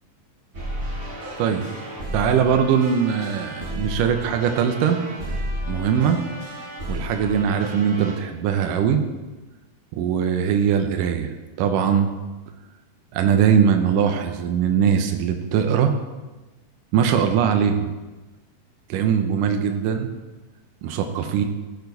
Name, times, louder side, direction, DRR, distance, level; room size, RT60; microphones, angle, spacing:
sound 1, 0.5-8.1, equal, 40° right, 2.8 m, -33 dB
voice 1, 2.1-5.0 5.7-6.2 6.9-9.0 9.9-11.3 11.6-12.1 13.1-15.9 16.9-17.9 18.9-20.1 20.8-21.5, right 7 dB, 75° right, 5 dB, 2.3 m, -21 dB
15.5 x 6.9 x 4.0 m, 1.2 s
omnidirectional pair, 4.1 m